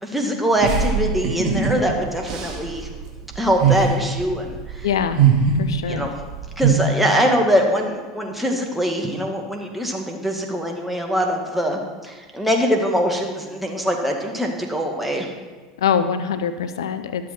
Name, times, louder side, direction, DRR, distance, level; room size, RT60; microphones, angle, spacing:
voice 1, 0.0-2.9 3.4-4.9 5.9-6.1 6.6-15.3, equal, 5° right, 1 dB, 1.8 m, -23 dB
sound 1, 0.6-6.7, right 7 dB, 40° right, 2.4 m, -22 dB
voice 2, 4.8-5.2 5.6-6.1 15.8-17.3, left 7 dB, 75° left, 10 dB, 0.5 m, -23 dB
12.0 x 7.4 x 4.4 m, 1.3 s
hypercardioid pair, 80°, 2 cm